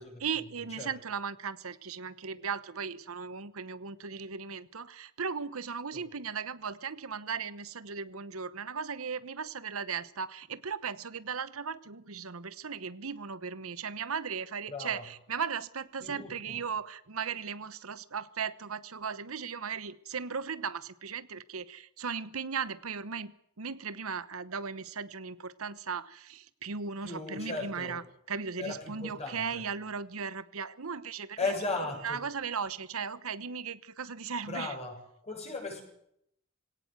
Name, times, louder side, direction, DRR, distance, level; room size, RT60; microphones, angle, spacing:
voice 1, 0.2-23.3 23.6-28.0 28.3-34.7, right 6 dB, 80° right, 15 dB, 1.0 m, -37 dB
voice 2, 14.7-15.0 16.0-16.3 27.0-28.0 28.6-29.6 31.4-32.2 34.5-35.0 35.2-35.8, left 3 dB, 30° left, 2 dB, 7.1 m, -36 dB
22.0 x 17.5 x 8.1 m, 0.72 s
head